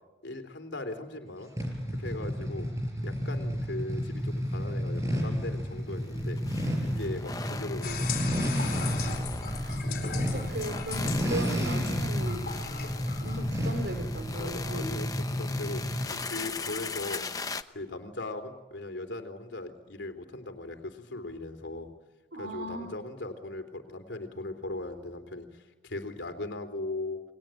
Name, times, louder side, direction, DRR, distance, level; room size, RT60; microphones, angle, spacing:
voice 1, 0.2-1.5 2.0-2.7 3.0-6.4 6.8-8.1 8.6-8.9 14.4-17.2 17.7-21.9 22.4-27.2, left 2 dB, 85° left, 7 dB, 3.7 m, -39 dB
sound 1, 1.6-16.2, equal, 15° right, 5.7 m, -31 dB
sound 2, 3.9-4.0 4.3-4.4 6.0-17.6, left 4 dB, 20° left, 0.9 m, -40 dB
sound 3, 7.8-15.0, left 5 dB, 50° left, 4.6 m, -39 dB
voice 2, 9.5-12.5 13.2-15.0 22.3-22.9, right 1 dB, 85° right, 8 dB, 4.5 m, -38 dB
30.0 x 21.5 x 9.2 m, 1.2 s
head